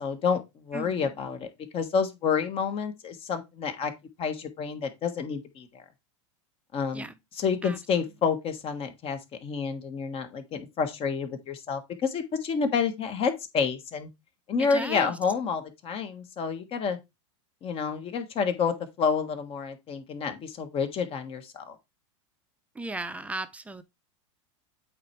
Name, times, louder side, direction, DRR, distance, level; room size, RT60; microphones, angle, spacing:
voice 1, 0.0-1.5 1.7-3.9 4.2-5.8 6.7-7.1 7.3-14.1 14.5-17.0 17.6-21.7, left 6 dB, 35° left, 1.5 m, -29 dB
voice 2, 0.7-1.1 6.9-7.1 7.6-7.8 14.6-15.2 22.7-23.8, right 2 dB, 10° right, 0.8 m, -36 dB
8.4 x 3.4 x 4.6 m
hypercardioid pair, 115°, 16 cm